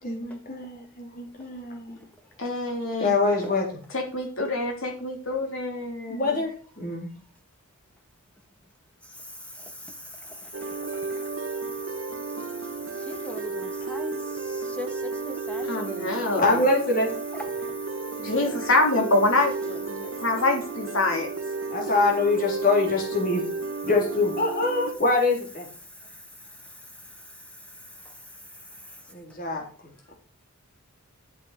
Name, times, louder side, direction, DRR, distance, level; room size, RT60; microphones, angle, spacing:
voice 1, 0.0-2.0 3.0-3.8 6.1-7.1 16.4-17.1 21.7-23.5 23.8-25.7 29.1-29.6, left 3 dB, 40° left, 3.7 m, -24 dB
voice 2, 2.4-3.1 3.9-6.4 15.6-16.6 18.2-21.3, left 2 dB, 60° left, 3.6 m, -26 dB
sound 1, 10.5-24.9, right 4 dB, 60° right, 1.5 m, -33 dB
voice 3, 13.1-14.2 14.5-16.1, left 1 dB, 5° left, 1.4 m, -38 dB
12.0 x 8.0 x 5.1 m
head